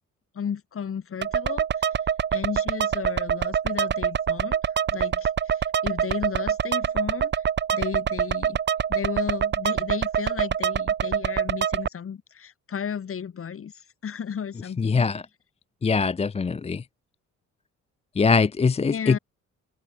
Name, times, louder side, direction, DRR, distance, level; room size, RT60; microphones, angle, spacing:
voice 1, 0.3-1.9 2.3-7.4 7.7-8.6 8.9-13.7 14.0-15.1 18.9-19.2, left 7 dB, 45° left, 2.7 m, -34 dB
sound 1, 1.2-11.9, right 8 dB, 35° right, 0.7 m, -25 dB
voice 2, 14.8-15.2 15.8-16.8 18.2-19.2, left 5 dB, 20° left, 0.6 m, -22 dB
open air
cardioid pair, 90°, 30 cm